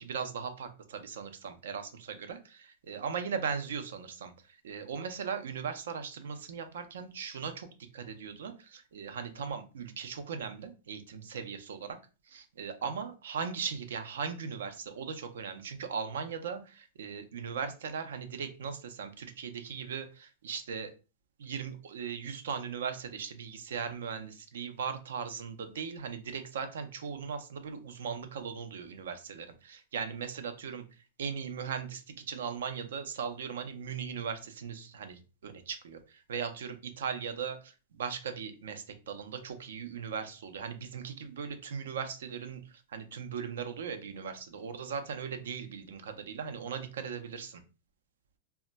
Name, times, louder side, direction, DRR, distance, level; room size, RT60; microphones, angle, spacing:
voice 1, 0.0-7.7 7.9-12.0 12.3-20.9 21.4-30.8 31.2-47.6, right 6 dB, 85° right, 8 dB, 0.5 m, -38 dB
2.2 x 2.1 x 3.9 m, 0.32 s
supercardioid pair, 150°, 0 cm